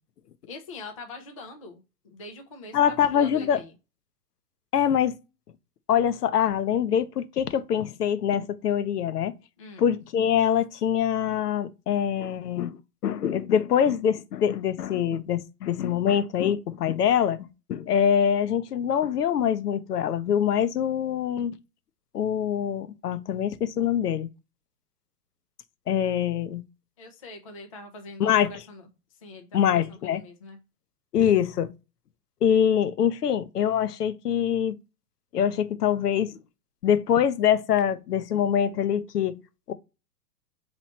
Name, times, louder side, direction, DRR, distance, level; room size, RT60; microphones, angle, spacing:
voice 1, 0.5-3.7 9.6-9.9 27.0-28.9 29.2-30.6, left 2 dB, 25° left, 0.3 m, -43 dB
voice 2, 2.7-3.6 4.7-5.2 5.9-9.3 9.8-21.6 22.1-24.3 25.9-26.6 28.2-28.5 29.5-30.2 31.1-31.7 32.4-34.8 35.3-36.4 36.8-39.4 39.7-39.8, left 9 dB, 75° left, 0.7 m, -24 dB
3.1 x 3.1 x 4.1 m
hypercardioid pair, 125°, 48 cm